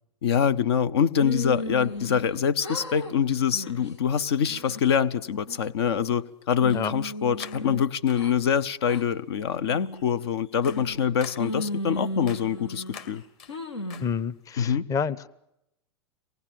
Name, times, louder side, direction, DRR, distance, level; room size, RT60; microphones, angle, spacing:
voice 1, 0.2-13.2 14.6-14.8, left 7 dB, 70° left, 16 dB, 0.8 m, -25 dB
sound 1, 1.2-2.3 2.6-3.1 3.5-3.9 4.4-5.0 5.5-6.2 6.6-8.3 8.9-9.0 9.6-10.0 10.6-11.1 11.4-13.0 13.5-14.1, left 1 dB, 90° left, 2.4 m, -35 dB
sound 2, 1.4-1.5 3.1-3.3 4.3-4.4 6.7-7.0 7.4-8.5 8.9-9.2 9.7-14.5, left 7 dB, 40° left, 2.5 m, -48 dB
voice 2, 14.0-15.3, left 6 dB, 25° left, 15 dB, 0.8 m, -29 dB
24.0 x 18.5 x 7.6 m, 0.83 s
hypercardioid pair, 105°, 14 cm